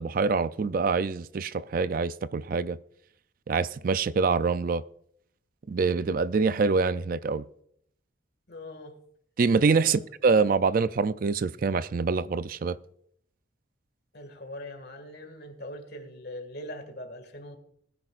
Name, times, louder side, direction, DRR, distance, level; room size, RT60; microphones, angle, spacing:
voice 1, 0.0-2.8 3.5-4.8 5.7-7.4 9.4-12.8, right 4 dB, 45° right, 0.4 m, -25 dB
voice 2, 8.5-8.9 9.8-10.1 14.1-17.6, left 1 dB, 50° left, 2.0 m, -41 dB
19.5 x 10.0 x 2.5 m
head